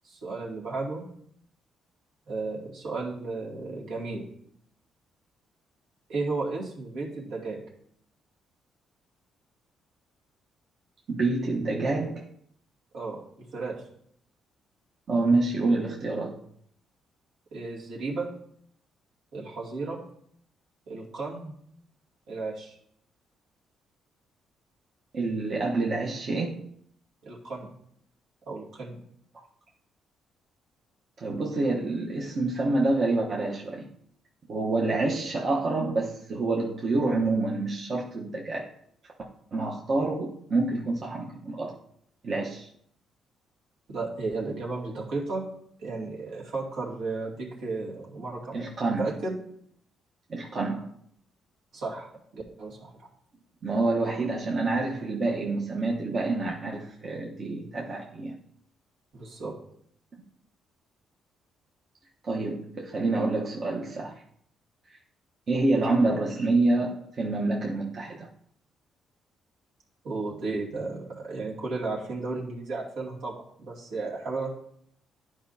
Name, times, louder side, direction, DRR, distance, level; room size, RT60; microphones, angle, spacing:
voice 1, 0.0-1.0 2.3-4.2 6.1-7.6 12.9-13.8 17.5-18.3 19.3-20.0 20.9-21.6 22.3-22.8 27.2-27.7 28.4-29.0 43.9-45.5 45.8-48.7 49.0-49.4 51.7-52.9 59.1-59.5 70.0-74.5, right 3 dB, 80° right, -5 dB, 2.4 m, -34 dB
voice 2, 11.1-12.2 15.1-16.4 25.1-26.7 31.2-33.9 34.5-38.7 39.5-41.8 42.2-42.7 48.5-49.1 50.3-50.9 53.6-58.3 62.2-64.2 65.5-68.3, right 2 dB, 50° right, -2 dB, 1.0 m, -27 dB
11.0 x 4.9 x 2.8 m, 0.68 s
cardioid pair, 90°, 0 cm